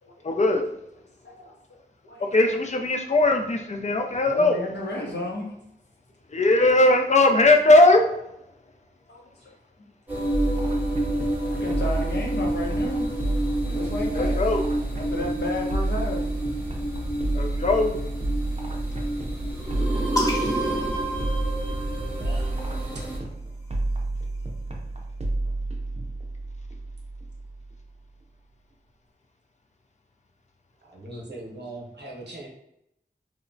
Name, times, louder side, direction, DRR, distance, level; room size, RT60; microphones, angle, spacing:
voice 1, 0.2-0.6 2.3-4.5 6.3-8.1 14.2-14.6 17.3-18.0, left 2 dB, 45° left, 4 dB, 0.4 m, -19 dB
voice 2, 1.2-2.3 4.2-5.5 9.1-9.5 10.9-13.2 13.6-14.4 14.9-16.3, left 1 dB, 80° left, -2 dB, 0.7 m, -33 dB
sound 1, 10.1-23.2, right 1 dB, 10° right, 0.8 m, -29 dB
sound 2, 10.3-27.9, right 2 dB, 40° right, 0.5 m, -30 dB
sound 3, 20.2-22.0 23.1-24.7, left 1 dB, 20° left, 0.9 m, -34 dB
voice 3, 30.8-32.5, right 1 dB, 85° right, -1 dB, 0.7 m, -40 dB
2.8 x 2.1 x 2.6 m, 0.80 s
wide cardioid pair, 65°, 17 cm